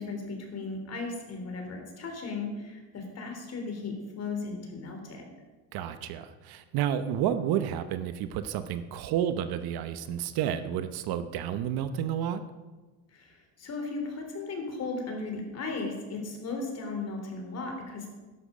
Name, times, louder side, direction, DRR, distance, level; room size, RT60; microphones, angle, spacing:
voice 1, 0.0-5.2 13.1-18.1, left 3 dB, 35° left, 3 dB, 3.3 m, -36 dB
voice 2, 5.7-12.4, right 10 dB, 55° right, 10 dB, 0.9 m, -30 dB
13.0 x 11.0 x 5.0 m, 1.2 s
cardioid pair, 130°, 45 cm